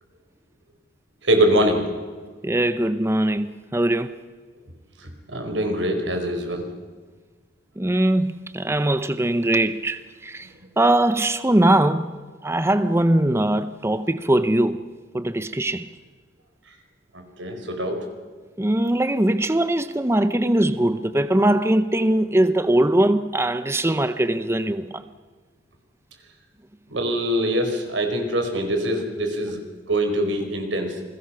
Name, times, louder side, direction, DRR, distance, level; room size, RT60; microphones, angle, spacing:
voice 1, 1.2-1.9 5.0-6.6 17.1-18.0 26.9-29.6 29.9-31.0, right 1 dB, 90° right, 4.8 m, -23 dB
voice 2, 2.4-4.2 7.8-10.5 10.8-12.1 12.4-14.8 15.1-15.9 18.6-25.0, right 1 dB, 15° right, 0.7 m, -21 dB
29.0 x 21.0 x 5.8 m
head